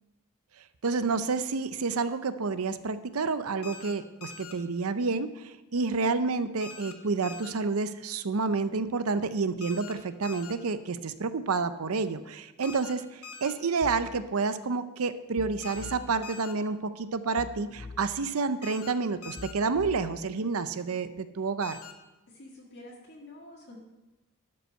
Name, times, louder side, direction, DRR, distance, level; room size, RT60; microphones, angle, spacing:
voice 1, 0.8-21.8, right 4 dB, 75° right, 12 dB, 0.6 m, -29 dB
sound 1, 3.6-3.9 4.2-4.5 6.6-6.9 7.2-7.5 9.6-9.9 10.2-10.5 12.6-12.9 13.2-13.5 15.6-15.9 16.2-16.5 18.6-18.9 19.2-19.5 21.6-21.9, left 6 dB, 85° left, 1.2 m, -44 dB
sound 2, 13.8-14.2 15.4-16.2 17.4-18.2 19.4-20.2, left 3 dB, 30° left, 0.4 m, -43 dB
voice 2, 22.3-23.8, left 1 dB, 50° left, -4 dB, 1.8 m, -48 dB
12.0 x 5.4 x 6.5 m, 1.1 s
head